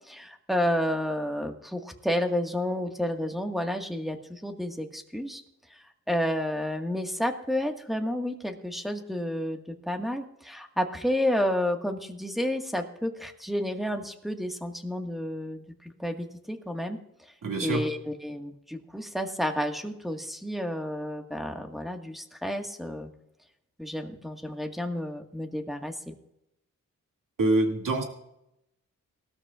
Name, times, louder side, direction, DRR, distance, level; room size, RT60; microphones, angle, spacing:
voice 1, 0.1-5.4 6.1-9.6 9.9-15.6 16.0-17.0 17.6-23.1 23.8-26.1, left 1 dB, ahead, 3 dB, 1.7 m, -30 dB
voice 2, 17.4-17.8 27.4-28.0, right 2 dB, 80° right, 2 dB, 2.4 m, -25 dB
19.0 x 13.0 x 2.5 m, 0.83 s
cardioid pair, 65°, 32 cm